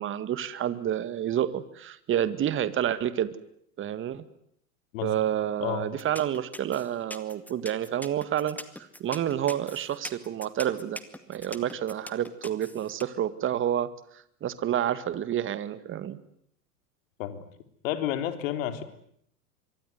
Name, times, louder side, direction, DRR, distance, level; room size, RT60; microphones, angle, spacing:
voice 1, 0.0-3.3 3.8-4.2 5.0-11.0 11.3-13.9 14.4-16.2, right 10 dB, 25° right, 14 dB, 2.0 m, -29 dB
sound 1, 6.0-13.0, left 1 dB, 5° left, 2.1 m, -41 dB
voice 2, 17.8-18.8, left 11 dB, 55° left, 9 dB, 3.8 m, -30 dB
25.0 x 24.0 x 9.6 m, 0.71 s
hypercardioid pair, 105°, 46 cm